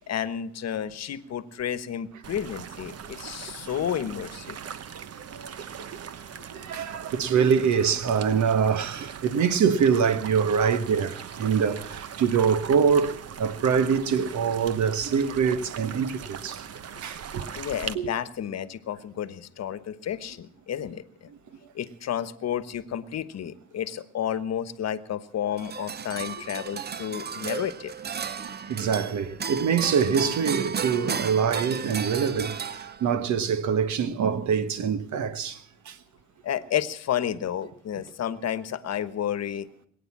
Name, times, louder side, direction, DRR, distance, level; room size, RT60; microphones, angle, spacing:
voice 1, 0.1-4.6 17.5-21.3 21.7-27.9 36.4-39.7, left 9 dB, 60° left, 1.1 m, -31 dB
sound 1, 2.2-17.9, right 8 dB, 55° right, 1.0 m, -40 dB
voice 2, 5.1-5.5 6.4-16.6 17.0-17.4 17.9-18.1 28.3-36.0, right 6 dB, 70° right, 1.3 m, -25 dB
sound 2, 25.6-33.3, right 6 dB, 35° right, 0.7 m, -34 dB
20.5 x 9.2 x 7.4 m
cardioid pair, 90°, 30 cm